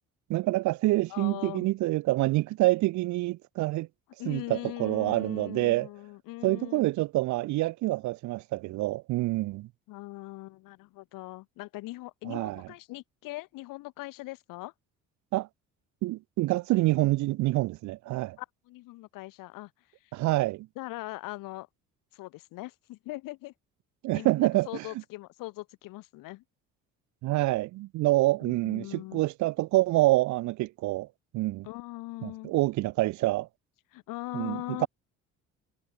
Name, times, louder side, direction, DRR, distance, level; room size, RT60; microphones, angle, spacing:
voice 1, 0.3-3.9 4.3-5.9 6.4-9.7 12.3-12.6 15.3-15.5 16.0-18.4 20.1-20.7 24.0-24.8 27.2-31.1 31.3-31.7 32.2-33.5 34.3-34.9, right 18 dB, 60° right, 0.4 m, -27 dB
voice 2, 1.1-1.7 4.2-6.8 9.9-14.7 18.4-19.7 20.7-21.7 22.1-23.5 24.1-26.4 28.4-29.3 31.6-32.5 33.9-34.9, left 19 dB, 80° left, 1.6 m, -41 dB
supercardioid pair, 80°, 33 cm